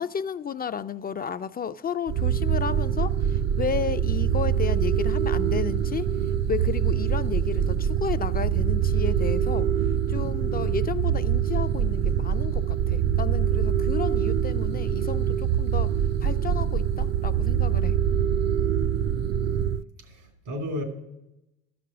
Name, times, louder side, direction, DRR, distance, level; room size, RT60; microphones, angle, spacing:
voice 1, 0.0-6.1 6.5-9.7 10.1-15.9 16.2-18.0, left 7 dB, 30° left, 0.3 m, -32 dB
sound 1, 2.1-19.8, right 9 dB, 55° right, 0.6 m, -24 dB
voice 2, 19.3-20.8, left 1 dB, 85° right, 2.9 m, -35 dB
13.5 x 6.1 x 5.9 m
supercardioid pair, 75°, 33 cm